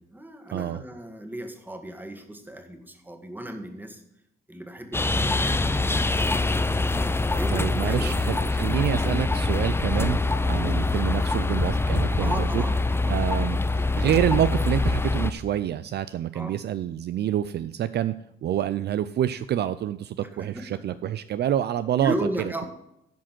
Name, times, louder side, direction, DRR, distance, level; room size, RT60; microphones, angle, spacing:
voice 1, 0.0-4.0 4.5-6.7 7.4-8.2 8.9-9.1 12.2-13.2 16.3-16.6 20.4-21.0 21.9-22.7, right 1 dB, 10° right, 5 dB, 1.7 m, -35 dB
sound 1, 4.9-15.3, left 2 dB, 10° left, 0.6 m, -24 dB
voice 2, 7.5-10.2 10.5-12.6 13.1-13.6 14.0-18.1 18.4-22.1, right 11 dB, 55° right, 13 dB, 0.4 m, -27 dB
10.5 x 5.0 x 7.5 m, 0.81 s
cardioid pair, 90°, 20 cm